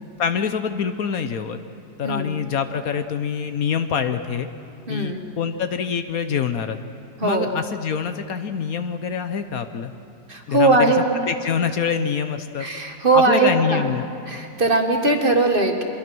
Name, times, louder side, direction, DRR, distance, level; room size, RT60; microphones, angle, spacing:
voice 1, 0.2-1.6 2.0-4.5 4.9-6.8 7.2-9.9 10.5-10.8 11.3-12.7 13.1-14.0, left 7 dB, 65° left, 9 dB, 1.2 m, -25 dB
voice 2, 2.0-2.3 4.9-5.2 7.2-7.5 10.3-11.1 12.6-13.9 14.3-15.8, right 3 dB, 35° right, 4 dB, 1.7 m, -19 dB
25.5 x 21.5 x 6.2 m, 2.5 s
omnidirectional pair, 1.8 m